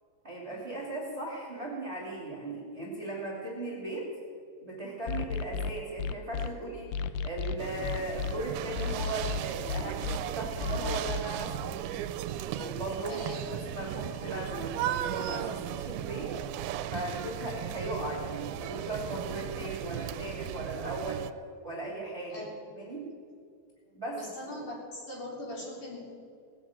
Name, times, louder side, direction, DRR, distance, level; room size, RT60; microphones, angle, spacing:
voice 1, 0.2-4.1 4.6-12.1 12.6-16.3 16.9-21.2 21.6-22.4 22.7-23.1 23.9-24.2, right 2 dB, 20° right, -4 dB, 2.2 m, -37 dB
sound 1, 5.1-6.5 6.9-8.3 8.8-10.2 10.6-11.2, left 6 dB, 85° left, 2.0 m, -33 dB
sound 2, 7.6-21.3, right 11 dB, 80° right, 2.4 m, -36 dB
voice 2, 13.1-13.4 22.3-22.5 23.8-26.0, left 1 dB, 55° left, -4 dB, 5.2 m, -41 dB
19.0 x 7.8 x 8.7 m, 2.3 s
omnidirectional pair, 4.5 m